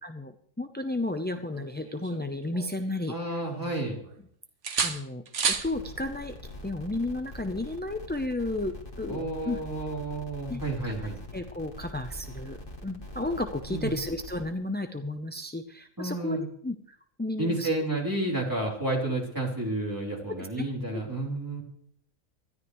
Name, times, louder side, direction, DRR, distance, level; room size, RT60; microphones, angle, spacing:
voice 1, 0.0-0.3 0.6-3.4 4.8-6.3 6.6-9.6 10.5-10.9 11.3-17.7 20.3-20.7 20.9-21.0, left 2 dB, 15° left, 7 dB, 0.4 m, -33 dB
sound 1, 1.5-3.1 3.4-4.2 4.6-5.7 7.6-7.8, right 6 dB, 60° right, 1.4 m, -32 dB
voice 2, 3.1-4.0 9.1-11.2 13.7-13.9 16.0-16.4 17.4-21.6, right 2 dB, 15° right, -2 dB, 3.5 m, -31 dB
sound 2, 5.5-14.4, left 1 dB, 40° left, 2.1 m, -43 dB
20.5 x 13.0 x 3.1 m, 0.62 s
omnidirectional pair, 1.4 m